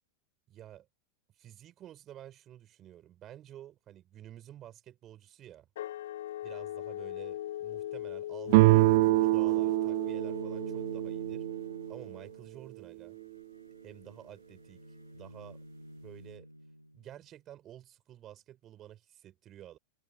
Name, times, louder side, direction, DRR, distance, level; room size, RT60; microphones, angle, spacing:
voice 1, 0.5-0.9 1.3-5.7 6.4-11.4 11.9-13.2 13.8-14.8 15.1-15.6 16.0-16.5 16.9-19.8, right 12 dB, 30° right, 6.9 m, -50 dB
sound 1, 5.8-11.2, left 13 dB, 60° left, 7.1 m, -40 dB
sound 2, 8.5-12.1, right 22 dB, 50° right, 0.7 m, -25 dB
Bowed string instrument, 10.0-17.1, equal, 90° right, 7.4 m, -49 dB
figure-of-eight pair, 90°, 0 cm